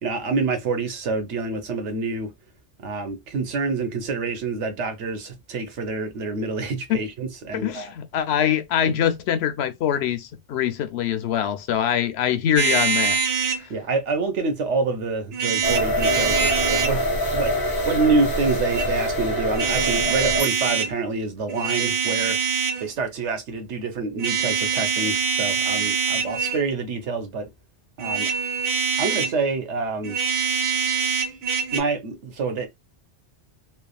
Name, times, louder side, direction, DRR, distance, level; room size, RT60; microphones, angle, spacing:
voice 1, 0.0-2.3 2.8-7.9 8.9-9.0 13.7-17.1 17.3-17.5 17.9-22.4 22.8-27.5 28.0-28.3 29.0-30.2 31.7-32.7, right 4 dB, 90° right, 1.2 m, -27 dB
voice 2, 7.5-13.2, left 9 dB, 70° left, 0.8 m, -23 dB
sound 1, 12.6-13.6 15.3-17.0 18.5-18.9 19.5-20.9 21.5-22.9 24.2-26.6 28.0-29.4 30.0-31.8, right 6 dB, 65° right, 1.0 m, -24 dB
sound 2, 15.6-20.5, equal, 20° left, 0.7 m, -24 dB
3.3 x 2.1 x 2.3 m
omnidirectional pair, 1.2 m